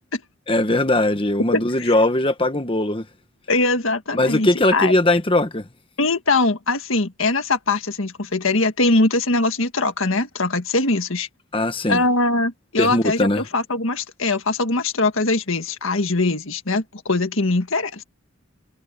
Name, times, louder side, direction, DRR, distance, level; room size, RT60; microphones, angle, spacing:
voice 1, 0.5-3.1 4.1-5.7 11.5-12.0 12.8-13.4, left 1 dB, 25° left, 1.4 m, -20 dB
voice 2, 1.5-1.9 3.5-5.0 6.0-11.3 11.9-18.0, left 2 dB, 70° left, 1.7 m, -22 dB
head